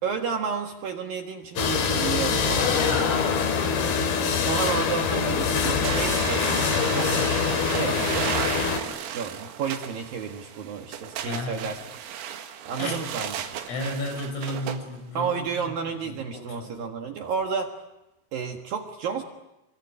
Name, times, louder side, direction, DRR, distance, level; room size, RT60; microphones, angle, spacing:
voice 1, 0.0-2.7 3.8-8.7 9.1-11.8 12.7-13.3 15.1-17.7 18.3-19.2, right 6 dB, 60° right, 4 dB, 2.7 m, -31 dB
sound 1, 1.6-8.8, left 6 dB, 55° left, 4.1 m, -24 dB
voice 2, 2.7-4.1 11.3-11.7 12.8-13.0 13.7-15.7 16.0-16.9, left 2 dB, 85° left, 4 dB, 8.7 m, -33 dB
sound 2, 5.8-14.8, right 9 dB, 80° right, 4.4 m, -34 dB
25.5 x 24.5 x 9.6 m, 0.93 s
omnidirectional pair, 5.8 m